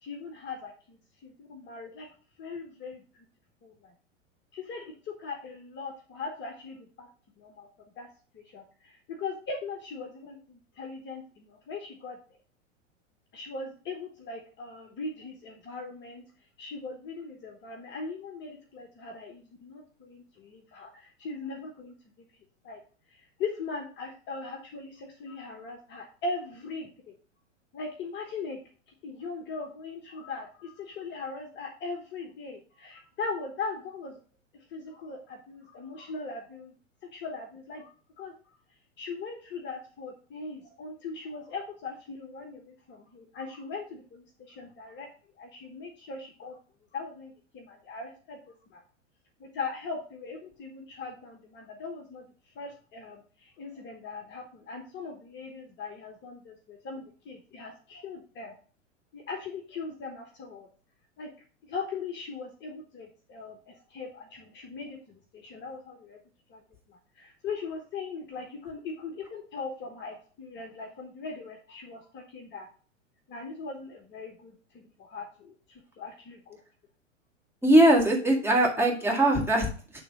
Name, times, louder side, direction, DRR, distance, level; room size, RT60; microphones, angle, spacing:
voice 1, 0.0-2.1 2.4-3.2 3.6-3.9 4.5-7.1 7.4-7.7 8.0-8.1 8.3-12.2 13.3-16.2 16.6-22.3 22.6-22.8 23.1-27.1 27.7-28.6 28.9-34.2 34.7-36.7 37.1-38.3 39.0-45.1 45.4-46.6 46.9-48.8 49.4-58.6 59.1-60.7 61.2-61.3 61.6-66.2 66.5-66.6 66.9-72.7 73.3-76.6, left 4 dB, 30° left, 4 dB, 1.1 m, -40 dB
voice 2, 77.6-80.0, right 1 dB, 5° right, -2 dB, 1.9 m, -21 dB
9.1 x 3.4 x 5.1 m, 0.40 s
hypercardioid pair, 100°, 38 cm